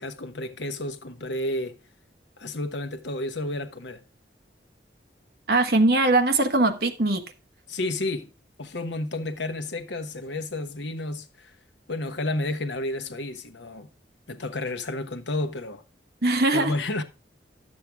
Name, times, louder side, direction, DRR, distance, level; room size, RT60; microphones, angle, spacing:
voice 1, 0.0-1.8 2.4-4.0 7.7-8.3 8.6-11.5 11.9-13.9 14.3-15.8 16.5-17.0, left 2 dB, 75° left, 1.1 m, -31 dB
voice 2, 5.5-7.2 16.2-16.7, right 2 dB, 55° right, 1.3 m, -21 dB
11.5 x 7.6 x 3.4 m
head